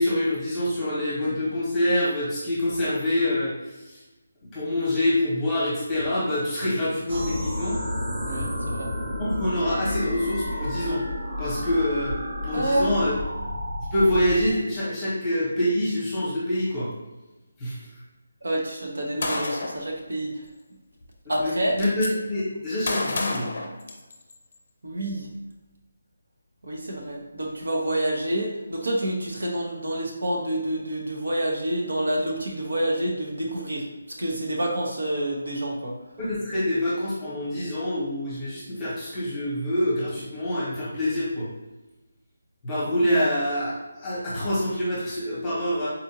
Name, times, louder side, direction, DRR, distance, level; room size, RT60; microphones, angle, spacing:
voice 1, 0.0-3.5 3.8-4.0 4.5-7.8 9.2-11.0 11.4-12.2 12.4-13.2 13.9-16.9 17.6-17.8 21.2-23.5 36.2-41.5 42.6-45.9, left 1 dB, 10° left, -9 dB, 0.9 m, -26 dB
sound 1, 7.1-14.5, left 1 dB, 55° right, 0.9 m, -31 dB
voice 2, 8.3-8.9 12.5-12.9 18.4-20.3 21.3-21.7 24.8-25.3 26.6-33.8 34.2-35.9, right 1 dB, 85° right, -1 dB, 1.0 m, -28 dB
Gunshot gunfire, 19.2-19.8 21.0-21.1 21.4-22.1 22.9-24.3, left 2 dB, 45° left, 0.5 m, -29 dB
4.2 x 2.5 x 2.7 m, 1.1 s
hypercardioid pair, 175°, 0 cm